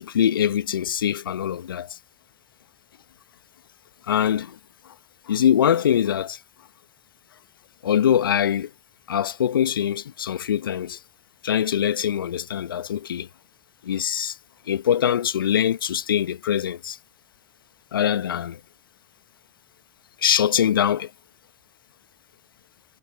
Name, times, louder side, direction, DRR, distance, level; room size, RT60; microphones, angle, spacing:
voice 1, 0.0-2.0 4.1-4.6 5.3-6.4 7.8-8.7 9.1-11.0 11.4-13.3 13.8-14.4 14.7-17.0 17.9-18.6 20.2-21.1, left 9 dB, 80° left, 1.4 m, -23 dB
figure-of-eight pair, 65°, 12 cm